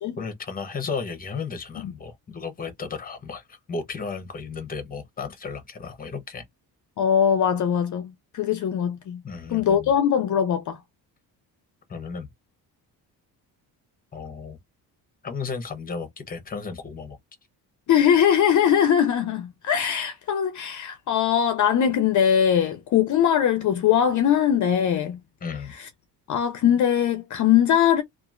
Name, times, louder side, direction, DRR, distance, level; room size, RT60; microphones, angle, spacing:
voice 1, 0.2-6.4 9.2-9.9 11.9-12.3 14.1-14.6 15.2-17.2 25.4-25.7, left 5 dB, 20° left, 0.8 m, -34 dB
voice 2, 7.0-9.2 9.5-10.8 17.9-25.2 25.8-25.9 26.3-28.0, left 9 dB, 50° left, 0.5 m, -21 dB
2.8 x 2.4 x 2.4 m
cardioid pair, 135°, 39 cm